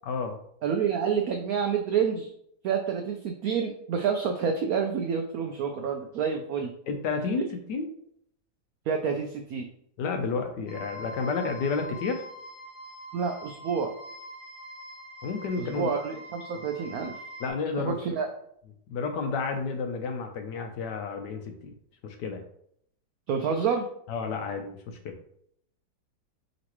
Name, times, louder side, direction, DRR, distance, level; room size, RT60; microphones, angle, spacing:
voice 1, 0.0-0.4 6.9-7.9 10.0-12.3 15.2-15.9 17.4-18.0 18.9-21.7 22.0-22.4 24.1-25.2, left 4 dB, 70° left, 5 dB, 1.2 m, -31 dB
voice 2, 0.6-2.3 2.6-6.7 7.4-7.5 8.9-9.7 13.1-13.9 15.6-17.2 17.8-18.3 23.3-23.9, right 6 dB, 85° right, 4 dB, 0.7 m, -28 dB
sound 1, 10.7-17.5, equal, 30° left, 1.5 m, -43 dB
5.1 x 3.0 x 3.0 m, 0.68 s
omnidirectional pair, 2.1 m